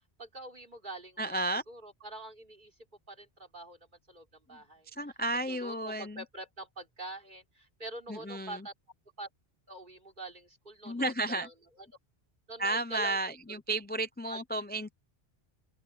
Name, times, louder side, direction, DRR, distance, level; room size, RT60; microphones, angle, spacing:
voice 1, 0.2-1.4 1.7-2.8 3.1-3.8 4.1-4.9 5.5-8.7 9.2-9.3 9.7-11.9 12.5-13.2 13.5-13.6 14.3-14.4, right 2 dB, 50° right, 3.8 m, -45 dB
voice 2, 1.2-1.6 4.9-6.2 8.1-8.7 10.8-11.5 12.6-14.9, right 2 dB, 10° left, 0.6 m, -33 dB
open air
omnidirectional pair, 1.1 m